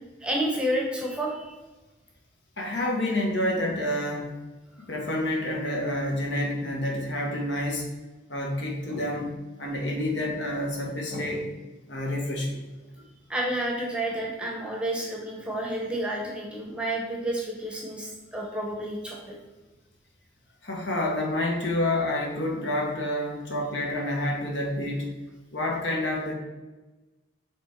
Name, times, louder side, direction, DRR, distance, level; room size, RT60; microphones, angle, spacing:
voice 1, 0.2-1.5 4.8-4.9 13.3-19.3, right 1 dB, 5° right, -2 dB, 0.9 m, -30 dB
voice 2, 2.6-4.3 4.8-7.9 8.3-11.5 11.9-12.6 20.6-25.1 25.5-26.3, left 1 dB, 65° left, 0 dB, 1.3 m, -28 dB
6.1 x 3.6 x 4.4 m, 1.2 s
head